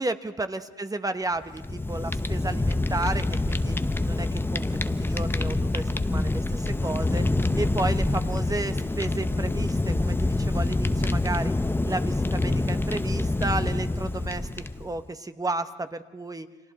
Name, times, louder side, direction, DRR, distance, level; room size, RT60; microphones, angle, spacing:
voice 1, 0.0-3.8 4.1-7.2 7.6-11.5 11.8-14.5 14.8-16.5, right 2 dB, 20° right, 9 dB, 1.2 m, -32 dB
Fire, 1.4-15.0, left 2 dB, 10° left, 0.8 m, -26 dB
30.0 x 24.0 x 4.3 m, 1.3 s
cardioid pair, 90°, 20 cm